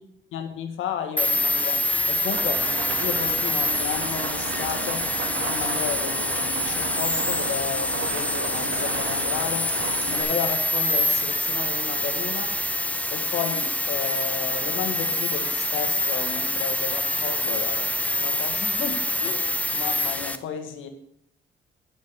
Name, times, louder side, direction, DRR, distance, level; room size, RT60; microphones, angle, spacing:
voice 1, 0.3-2.7 3.0-5.1 5.4-9.7 10.1-12.5 13.1-20.9, left 8 dB, 85° left, 7 dB, 1.6 m, -33 dB
sound 1, 1.2-20.4, left 1 dB, 5° left, 0.7 m, -26 dB
Rain, 2.3-10.2, right 5 dB, 75° right, 1.7 m, -34 dB
10.5 x 5.2 x 6.7 m, 0.72 s
cardioid pair, 90°, 20 cm